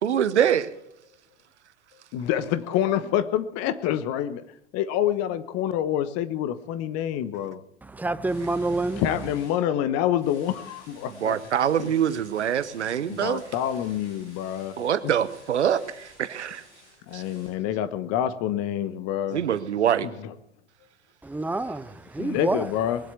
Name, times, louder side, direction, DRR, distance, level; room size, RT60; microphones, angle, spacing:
voice 1, 0.0-0.7 11.2-13.4 14.8-16.6 17.1-17.2 19.3-20.1, right 9 dB, 80° right, 1.0 m, -24 dB
voice 2, 2.1-4.4 4.7-7.6 8.9-11.4 11.8-12.2 13.1-14.8 17.1-19.4 20.0-20.3 22.2-23.0, left 11 dB, 45° left, 1.2 m, -27 dB
voice 3, 7.8-9.0 21.2-22.7, right 2 dB, 5° right, 0.7 m, -28 dB
sound 1, 8.2-9.6 10.2-17.5, left 1 dB, 80° left, 7.9 m, -52 dB
20.5 x 7.8 x 8.2 m
hypercardioid pair, 90°, 34 cm